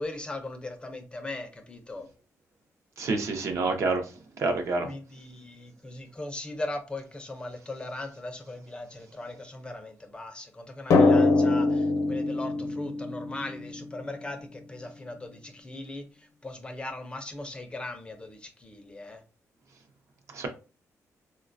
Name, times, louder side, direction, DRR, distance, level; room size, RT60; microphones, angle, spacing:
voice 1, 0.0-2.1 4.8-19.2, left 2 dB, 20° left, 0.4 m, -39 dB
voice 2, 3.0-4.0 4.4-4.9 20.3-20.5, right 3 dB, 60° right, 0.6 m, -27 dB
Drum, 10.9-14.2, left 3 dB, 70° left, 0.6 m, -23 dB
3.9 x 2.2 x 2.5 m
wide cardioid pair, 155°, 6 cm